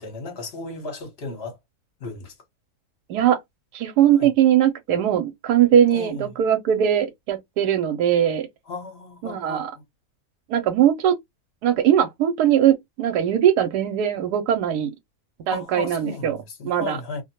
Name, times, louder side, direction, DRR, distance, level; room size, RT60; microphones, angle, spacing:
voice 1, 0.0-1.6 2.0-2.3 4.1-4.3 5.9-6.2 8.7-9.7 15.5-17.2, left 3 dB, 50° left, 1.0 m, -35 dB
voice 2, 3.7-8.5 9.2-9.7 10.5-11.1 11.6-14.9 15.5-16.4 16.6-17.0, right 10 dB, 85° right, 1.1 m, -20 dB
2.5 x 2.1 x 2.8 m
omnidirectional pair, 1.7 m